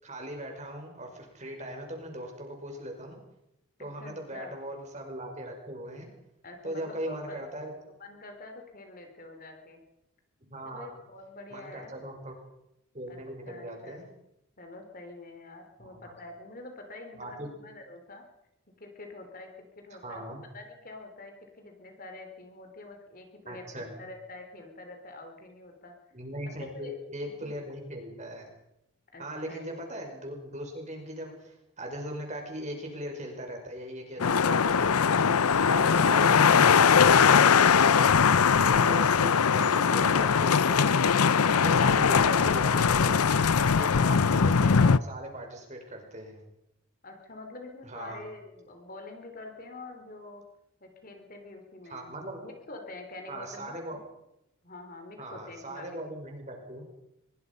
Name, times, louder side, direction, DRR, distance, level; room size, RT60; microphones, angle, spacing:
voice 1, 0.0-3.2 3.8-6.1 6.6-7.7 10.5-10.9 11.5-12.3 12.9-14.1 15.8-16.1 17.2-17.5 20.0-20.4 23.5-23.9 26.1-28.5 29.2-38.1 38.6-43.1 43.7-46.4 47.8-48.2 51.9-52.4 53.3-54.0 55.2-56.8, right 1 dB, 30° right, 2 dB, 5.6 m, -39 dB
voice 2, 4.0-4.5 6.4-7.4 8.0-9.8 10.6-12.1 13.1-13.2 13.4-14.0 14.6-18.2 18.8-25.9 26.6-27.0 27.2-27.5 29.1-29.6 34.2-34.7 47.0-50.4 50.8-52.2 52.4-53.7 54.6-56.0, left 2 dB, 40° left, 4 dB, 3.5 m, -46 dB
sound 1, 34.2-45.0, left 6 dB, 85° left, 0.7 m, -21 dB
23.5 x 22.5 x 5.5 m, 0.84 s
head